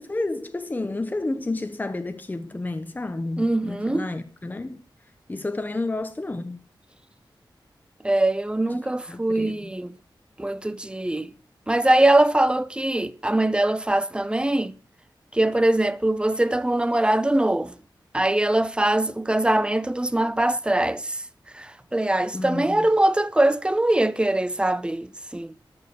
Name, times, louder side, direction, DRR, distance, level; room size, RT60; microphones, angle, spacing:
voice 1, 0.0-4.8 5.3-6.6 9.1-9.7 22.3-22.9, left 2 dB, 20° left, 0.9 m, -30 dB
voice 2, 3.4-4.1 8.0-10.0 10.4-11.3 11.7-14.7 15.3-17.8 18.1-21.2 21.5-25.6, right 1 dB, 10° right, 0.6 m, -22 dB
13.5 x 6.6 x 7.1 m
wide cardioid pair, 140°, 8 cm